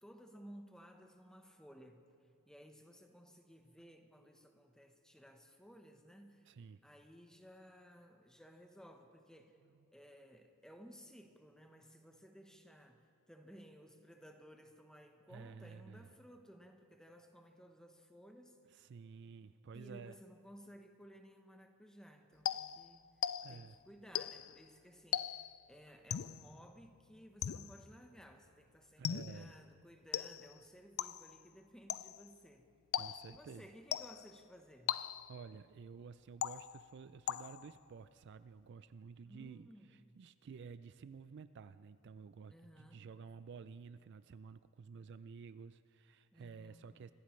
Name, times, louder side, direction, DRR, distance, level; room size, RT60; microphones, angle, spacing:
voice 1, 0.0-2.1 2.5-6.5 6.8-9.6 9.9-18.8 19.7-32.7 33.3-35.0 39.2-40.2 42.5-43.1 46.3-47.0, equal, 5° left, 5 dB, 1.0 m, -58 dB
voice 2, 6.5-6.8 15.3-16.1 18.8-20.2 23.4-23.8 29.0-29.5 32.9-33.7 35.3-47.1, right 5 dB, 55° right, 13 dB, 0.4 m, -52 dB
sound 1, 22.5-23.7 24.2-24.6 25.1-25.6 26.1-26.5 27.4-27.9 29.0-29.5 30.1-30.6 31.0-31.4 31.9-32.3 32.9-33.4 33.9-34.4 34.9-35.4 36.4-36.9 37.3-37.8, left 10 dB, 75° left, 0.4 m, -39 dB
24.5 x 15.5 x 3.2 m, 2.6 s
head